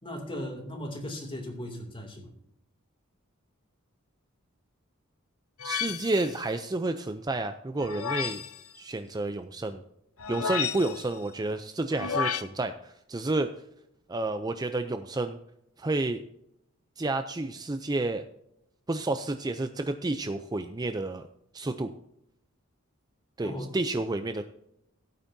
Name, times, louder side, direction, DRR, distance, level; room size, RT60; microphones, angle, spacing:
voice 1, 0.0-2.3 23.4-23.7, left 1 dB, 25° left, 2 dB, 2.6 m, -37 dB
sound 1, 5.6-6.4 7.8-8.6 10.2-11.1 11.9-12.4, left 7 dB, 80° left, 0.8 m, -32 dB
voice 2, 5.6-8.4 8.7-9.8 10.3-13.5 14.1-15.4 15.8-16.2 17.0-18.2 18.9-21.3 21.5-21.9 23.4-24.4, right 2 dB, 20° right, 8 dB, 0.5 m, -30 dB
16.5 x 8.9 x 2.7 m, 0.77 s
head